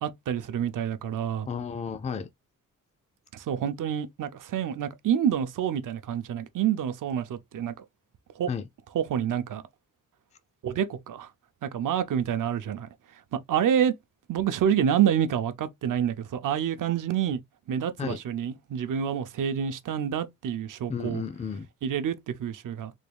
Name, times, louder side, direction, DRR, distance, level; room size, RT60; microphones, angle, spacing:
voice 1, 0.0-1.5 3.3-7.7 8.4-8.5 8.9-9.6 10.6-11.3 11.6-12.9 13.3-13.9 14.3-17.4 17.7-21.2 21.8-22.9, right 9 dB, 75° right, 0.6 m, -28 dB
voice 2, 1.5-2.3 8.5-8.7 18.0-18.2 20.9-21.7, left 6 dB, 20° left, 0.3 m, -32 dB
3.5 x 2.3 x 3.3 m
wide cardioid pair, 175°, 32 cm